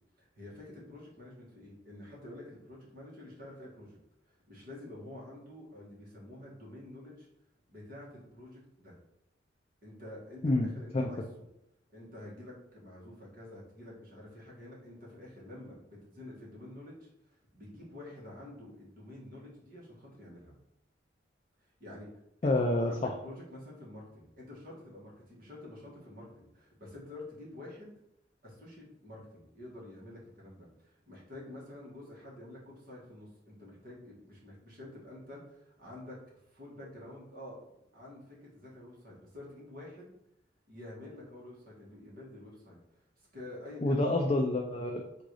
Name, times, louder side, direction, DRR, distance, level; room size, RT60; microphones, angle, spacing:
voice 1, 0.2-4.0 4.3-7.3 7.7-8.9 9.8-11.2 11.9-17.1 17.5-20.5 21.8-22.1 22.4-27.9 28.4-36.2 36.5-40.1 40.7-43.0 43.3-44.0, left 1 dB, 50° right, -5 dB, 1.6 m, -48 dB
voice 2, 10.4-11.1 22.4-23.1 43.8-45.2, left 2 dB, 30° left, 2 dB, 0.3 m, -28 dB
3.8 x 2.6 x 4.7 m, 0.83 s
head